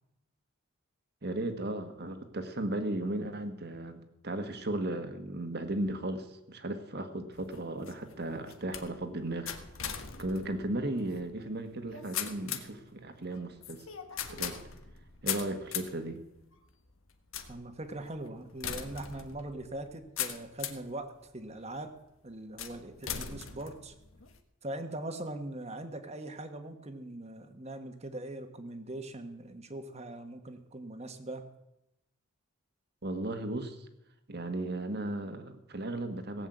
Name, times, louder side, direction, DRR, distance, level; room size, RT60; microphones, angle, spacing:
voice 1, 1.2-9.5 10.2-13.9 14.3-14.6 15.2-16.2 33.0-33.9 34.3-36.5, right 1 dB, 50° right, 7 dB, 1.6 m, -35 dB
sound 1, 7.3-20.9 21.5-22.0 22.6-24.4, left 8 dB, 75° left, 1.3 m, -41 dB
voice 2, 17.5-21.9 22.2-23.9 24.6-31.4, right 1 dB, 30° right, 7 dB, 1.4 m, -41 dB
17.5 x 7.9 x 7.9 m, 0.91 s
head